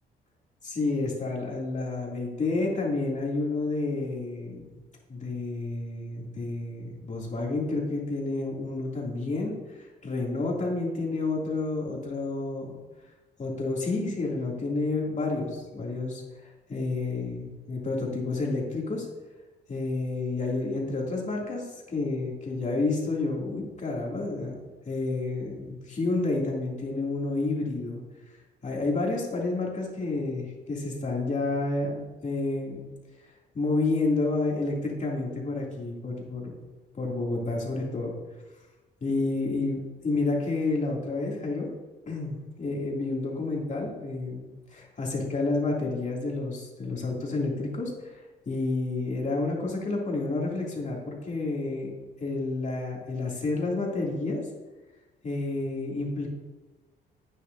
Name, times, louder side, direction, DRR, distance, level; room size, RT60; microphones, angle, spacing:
voice 1, 0.6-4.7 5.1-12.8 13.4-19.1 19.7-24.6 24.9-28.0 28.6-32.9 33.5-36.6 36.9-38.1 39.0-41.7 42.1-51.9 52.2-54.4 55.2-56.3, left 3 dB, 35° left, -2 dB, 2.7 m, -30 dB
11.0 x 9.2 x 2.7 m, 1.2 s
cardioid pair, 90°, 20 cm